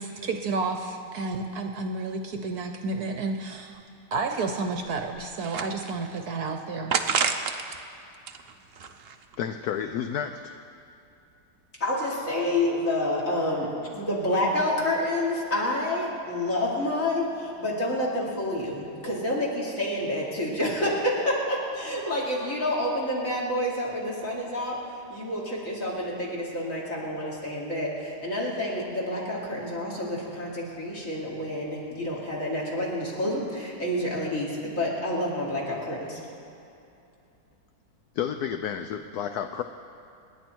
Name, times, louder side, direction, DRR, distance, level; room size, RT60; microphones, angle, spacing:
voice 1, 0.0-3.8 4.1-6.9, right 3 dB, 60° right, 5 dB, 1.2 m, -31 dB
sound 1, 3.7-3.8 4.2-4.3 4.8-6.2 6.9-7.8 8.1-9.3, right 6 dB, 75° right, 0.5 m, -29 dB
voice 2, 9.4-10.5 38.2-39.6, left 8 dB, 70° left, 7 dB, 1.0 m, -31 dB
voice 3, 11.8-24.8 25.1-36.2, left 1 dB, 40° left, -4 dB, 3.4 m, -28 dB
27.5 x 10.5 x 4.5 m, 2.7 s
omnidirectional pair, 2.1 m